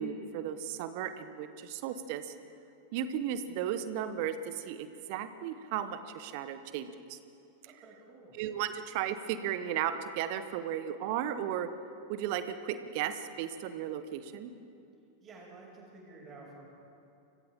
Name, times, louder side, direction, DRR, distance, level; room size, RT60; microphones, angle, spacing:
voice 1, 0.0-2.3 2.9-7.2 8.3-11.7 12.1-14.5, right 9 dB, 45° right, 11 dB, 1.3 m, -35 dB
voice 2, 7.7-8.4 15.2-16.7, right 3 dB, 25° right, -2 dB, 6.7 m, -51 dB
29.5 x 24.5 x 3.8 m, 2.6 s
figure-of-eight pair, 90°, 0 cm